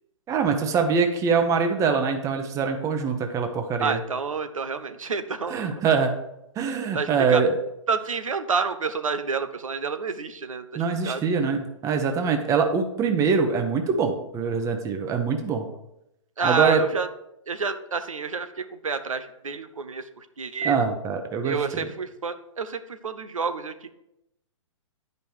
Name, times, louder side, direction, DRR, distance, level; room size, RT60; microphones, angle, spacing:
voice 1, 0.3-4.0 5.5-6.1 6.6-7.5 10.8-15.7 16.4-16.8 20.6-21.9, right 5 dB, 20° right, 6 dB, 0.9 m, -24 dB
voice 2, 3.8-5.8 6.9-7.4 7.9-11.2 16.4-17.1 17.5-20.8 21.4-23.9, right 5 dB, 85° right, 10 dB, 0.9 m, -29 dB
10.0 x 5.4 x 4.6 m, 0.84 s
hypercardioid pair, 130°, 17 cm